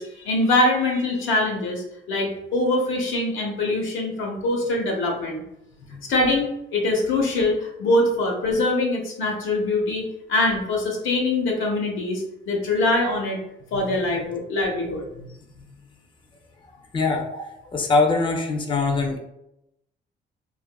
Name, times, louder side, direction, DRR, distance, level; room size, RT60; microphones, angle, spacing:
voice 1, 0.0-5.4 6.1-13.4 13.7-15.1 17.3-17.4, left 2 dB, 80° left, 0 dB, 0.9 m, -23 dB
voice 2, 16.9-17.2 17.7-19.2, left 3 dB, 25° left, 2 dB, 0.4 m, -22 dB
2.8 x 2.4 x 2.2 m, 0.83 s
cardioid pair, 90°, 20 cm